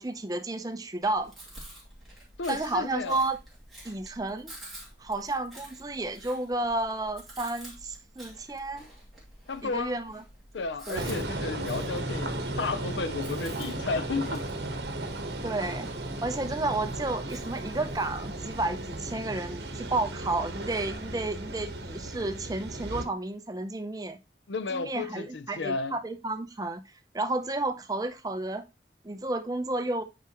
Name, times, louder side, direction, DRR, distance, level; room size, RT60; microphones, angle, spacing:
voice 1, 0.0-1.3 2.5-3.4 3.8-4.5 5.0-8.8 9.6-10.2 10.9-11.2 15.4-15.9 16.2-24.2 24.7-26.8 27.1-28.7 29.0-30.0, right 2 dB, 20° right, 0.6 m, -31 dB
Chewing mastication, 1.0-19.1, right 1 dB, ahead, 2.6 m, -50 dB
voice 2, 2.4-3.2 9.5-9.9 10.5-14.4 24.5-25.9, left 4 dB, 80° left, 0.6 m, -33 dB
sound 1, 11.0-23.1, right 1 dB, 65° right, 1.1 m, -35 dB
8.9 x 4.9 x 3.0 m
head